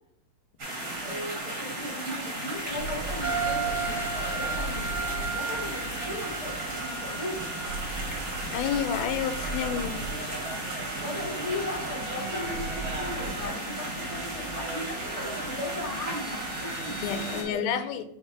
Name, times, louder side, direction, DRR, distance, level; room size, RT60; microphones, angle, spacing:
sound 1, 0.6-17.4, right 1 dB, 35° right, 1.6 m, -35 dB
voice 1, 1.0-7.7 11.0-17.8, left 1 dB, 35° left, -3 dB, 0.5 m, -38 dB
sound 2, 2.7-13.5, right 2 dB, 90° right, 1.4 m, -40 dB
sound 3, 3.2-17.5, right 4 dB, 20° right, 1.2 m, -37 dB
voice 2, 8.5-10.0 17.0-18.0, left 8 dB, 85° left, 11 dB, 2.4 m, -29 dB
5.7 x 4.0 x 4.6 m, 0.73 s
omnidirectional pair, 4.2 m